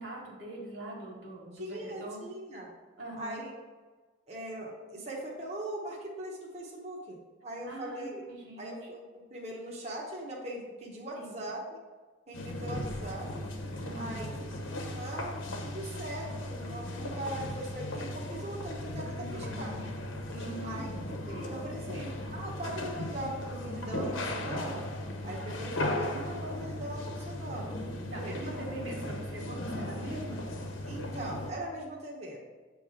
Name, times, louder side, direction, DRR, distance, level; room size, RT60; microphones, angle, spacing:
voice 1, 0.0-2.2 3.0-3.4 7.7-8.7 11.1-11.5 13.8-14.3 19.2-19.6 20.3-20.9 21.3-22.1 28.1-30.4, right 2 dB, 65° right, -4 dB, 1.7 m, -43 dB
voice 2, 1.6-2.7 3.2-3.5 4.3-7.2 7.4-8.2 8.6-11.8 12.3-13.4 13.9-14.5 14.9-19.7 20.6-20.9 21.5-24.9 25.2-27.8 28.2-28.5 30.9-32.4, right 1 dB, 35° right, -3 dB, 1.0 m, -40 dB
sound 1, 12.3-31.5, left 1 dB, 80° left, 1.0 m, -37 dB
7.7 x 3.2 x 4.9 m, 1.4 s
head